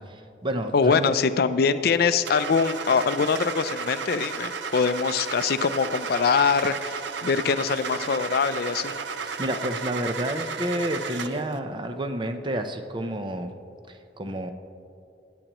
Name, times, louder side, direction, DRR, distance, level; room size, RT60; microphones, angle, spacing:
voice 1, 0.0-1.1 9.2-13.5 13.9-14.5, right 1 dB, 25° right, 7 dB, 0.6 m, -30 dB
voice 2, 0.7-8.9, left 5 dB, 55° left, 11 dB, 0.4 m, -23 dB
Car / Engine starting, 2.3-11.5, right 5 dB, 75° right, 0.6 m, -33 dB
23.0 x 8.7 x 3.0 m, 2.6 s
head